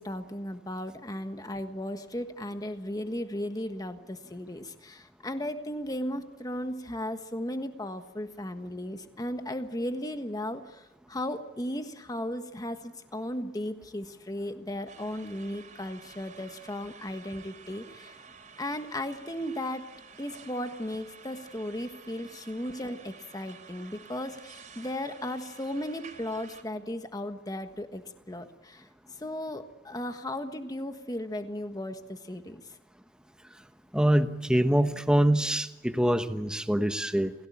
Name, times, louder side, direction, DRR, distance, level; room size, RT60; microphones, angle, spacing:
voice 1, 0.0-18.1 18.6-19.9 20.2-28.8 29.2-32.6, left 1 dB, 20° left, 7 dB, 1.5 m, -36 dB
sound 1, 14.9-26.6, right 6 dB, 40° right, 4.0 m, -51 dB
voice 2, 33.9-37.3, right 1 dB, 5° right, 9 dB, 1.1 m, -24 dB
29.5 x 17.0 x 8.6 m, 1.0 s
head